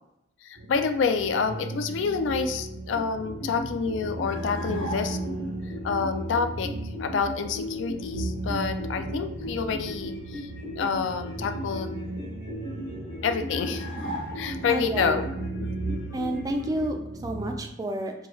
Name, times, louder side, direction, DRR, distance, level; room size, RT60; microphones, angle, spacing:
voice 1, 0.4-5.2 5.6-6.7 7.0-10.5 10.8-11.9 13.2-13.8 14.4-15.3, left 5 dB, 80° left, 8 dB, 0.4 m, -28 dB
sound 1, 0.6-17.7, right 2 dB, 75° right, 0.5 m, -37 dB
sound 2, 2.9-16.9, left 1 dB, 60° left, 1.0 m, -37 dB
sound 3, 4.3-5.5 13.5-14.8, equal, 30° left, 0.7 m, -37 dB
voice 2, 14.7-15.3 16.1-18.3, right 1 dB, 20° right, 4 dB, 0.3 m, -30 dB
4.4 x 2.3 x 3.1 m, 0.85 s
head